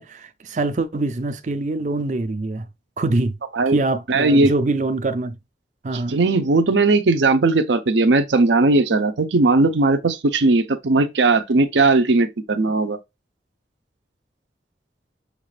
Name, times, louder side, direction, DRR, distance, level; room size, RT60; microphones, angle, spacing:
voice 1, 0.0-2.7 3.0-3.3 3.7-5.4 5.8-6.2, right 2 dB, 40° right, 0.5 m, -24 dB
voice 2, 4.1-4.5 6.1-13.0, right 3 dB, 85° right, 0.6 m, -18 dB
6.5 x 2.5 x 3.2 m
head